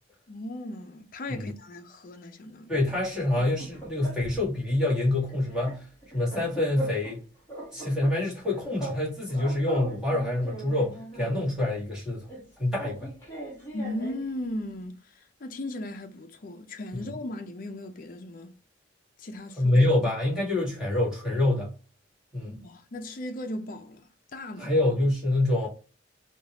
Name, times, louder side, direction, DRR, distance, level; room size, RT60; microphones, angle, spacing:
voice 1, 0.3-2.8 13.7-18.5 19.2-19.7 22.5-24.0 24.3-24.7, left 1 dB, 45° left, 0.5 m, -37 dB
voice 2, 2.7-7.2 7.7-12.2 12.6-13.1 16.9-17.0 19.6-21.7 22.3-22.6 24.6-25.7, left 1 dB, 5° right, 1.6 m, -26 dB
sound 1, 3.1-4.5 4.8-5.0 5.3-7.2 7.5-9.0 9.3-11.5 12.3-14.3, right 1 dB, 15° left, 1.3 m, -40 dB
3.5 x 2.3 x 2.8 m
head